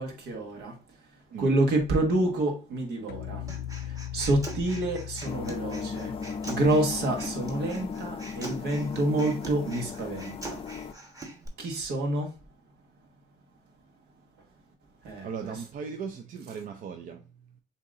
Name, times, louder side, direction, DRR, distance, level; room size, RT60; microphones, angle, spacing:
voice 1, 0.0-6.2 6.4-10.7 11.6-12.4 15.0-15.6, right 1 dB, 75° right, 1.6 m, -28 dB
sound 1, 3.1-8.3, left 10 dB, 85° left, 0.5 m, -40 dB
Human voice, 3.5-11.5, right 2 dB, 20° right, 1.2 m, -43 dB
sound 2, 5.2-10.9, left 5 dB, 35° left, 0.4 m, -36 dB
voice 2, 15.2-17.6, right 6 dB, 50° right, 0.6 m, -38 dB
6.9 x 2.8 x 2.5 m
cardioid pair, 110°, 17 cm